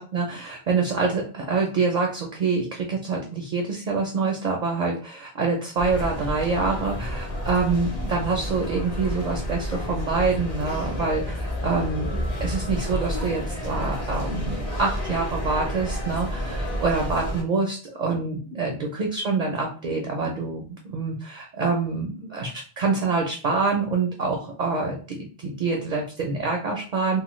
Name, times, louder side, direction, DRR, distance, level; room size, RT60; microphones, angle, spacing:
voice 1, 0.0-27.2, right 4 dB, 55° right, 1 dB, 0.5 m, -26 dB
sound 1, 5.8-17.4, equal, 40° left, 0.8 m, -30 dB
3.1 x 2.1 x 3.0 m, 0.40 s
omnidirectional pair, 1.1 m